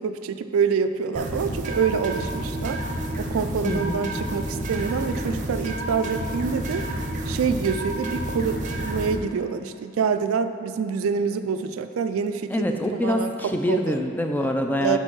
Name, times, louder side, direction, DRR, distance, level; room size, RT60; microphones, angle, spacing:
voice 1, 0.0-2.8 3.2-6.8 7.3-13.3 13.7-14.0 14.8-15.0, right 6 dB, 85° right, 10 dB, 0.4 m, -26 dB
sound 1, 1.1-9.2, right 1 dB, 35° right, 0.6 m, -30 dB
voice 2, 3.7-4.1 12.5-15.0, left 1 dB, 10° left, 4 dB, 0.4 m, -25 dB
5.3 x 4.5 x 6.0 m, 2.3 s
head